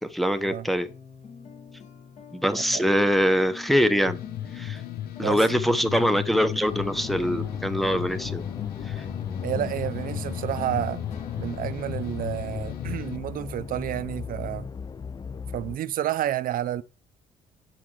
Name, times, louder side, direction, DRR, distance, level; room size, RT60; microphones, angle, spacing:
voice 1, 0.0-0.9 2.3-4.2 4.5-4.8 5.2-8.4 8.9-9.0, equal, ahead, 0.8 m, -23 dB
sound 1, 0.9-13.6, left 7 dB, 45° left, 1.5 m, -46 dB
voice 2, 2.5-2.8 5.2-5.4 9.4-11.0 11.4-14.7 15.5-16.8, right 12 dB, 55° right, 0.7 m, -30 dB
sound 2, 4.1-13.2, left 12 dB, 65° left, 1.0 m, -36 dB
sound 3, 6.6-15.8, left 6 dB, 25° left, 0.4 m, -36 dB
7.7 x 5.9 x 4.7 m
cardioid pair, 110°, 17 cm